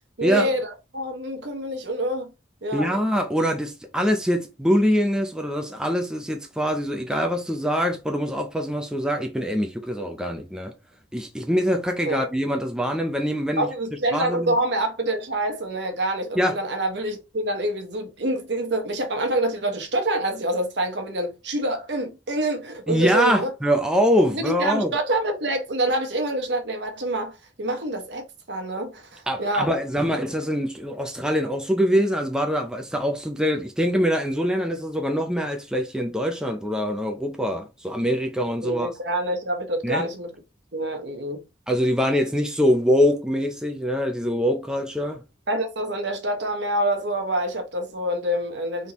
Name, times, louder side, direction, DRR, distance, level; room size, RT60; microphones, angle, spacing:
voice 1, 0.2-2.3 2.6-3.0 12.0-12.2 13.6-23.5 24.3-29.7 38.6-40.3 40.7-41.4 45.5-48.9, right 1 dB, 65° right, 1.1 m, -26 dB
voice 2, 2.7-10.7 11.1-13.7 14.1-14.6 16.4-16.6 22.9-24.9 29.3-38.9 39.8-40.1 41.7-45.2, equal, 5° right, 0.5 m, -24 dB
4.1 x 3.6 x 3.0 m
head